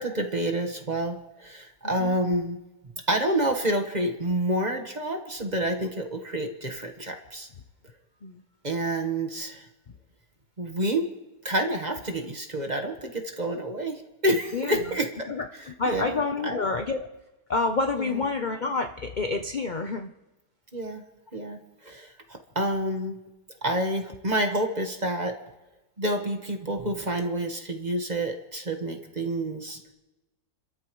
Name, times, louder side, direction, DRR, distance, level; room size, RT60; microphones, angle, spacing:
voice 1, 0.0-2.6 3.1-7.5 8.6-9.7 10.6-11.1 11.4-15.3 15.5-16.7 17.9-18.2 20.7-21.0 21.3-23.2 23.6-25.4 26.0-29.8, right 1 dB, 25° right, 4 dB, 1.3 m, -28 dB
voice 2, 15.8-17.1 17.5-20.1, left 3 dB, 45° left, 5 dB, 0.6 m, -28 dB
30.0 x 13.5 x 3.1 m, 1.0 s
omnidirectional pair, 1.8 m